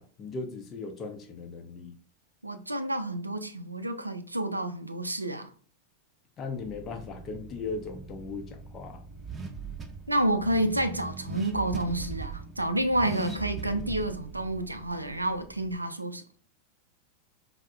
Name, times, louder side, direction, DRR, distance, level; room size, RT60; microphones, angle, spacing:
voice 1, 0.0-1.9 6.4-9.0, left 4 dB, 30° left, 0.5 m, -38 dB
voice 2, 2.4-5.5 10.1-16.2, right 1 dB, 85° right, 0.3 m, -29 dB
Car / Accelerating revving vroom, 6.6-15.8, right 5 dB, 20° right, 0.4 m, -41 dB
4.3 x 2.1 x 2.3 m
figure-of-eight pair, 90°, 0 cm